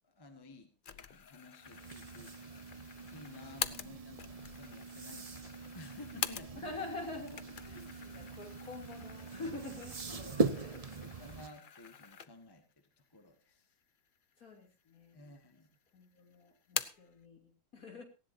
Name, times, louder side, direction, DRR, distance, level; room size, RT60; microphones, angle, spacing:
voice 1, 0.0-2.6 3.1-6.7 7.7-8.2 10.1-10.7 11.0-12.6 13.0-13.7 15.1-15.7, left 2 dB, 15° left, 6 dB, 1.6 m, -54 dB
sound 1, 0.8-6.8 7.2-12.6 13.1-13.2 14.0-14.7 15.0-15.7 16.0-17.1, left 7 dB, 75° left, 0.4 m, -45 dB
sound 2, 1.6-11.5, right 3 dB, 35° right, 0.6 m, -40 dB
voice 2, 6.5-10.2 10.5-11.5 14.4-15.2 15.9-18.0, left 3 dB, 50° left, 3 dB, 3.5 m, -47 dB
18.5 x 16.5 x 2.7 m, 0.30 s
omnidirectional pair, 2.0 m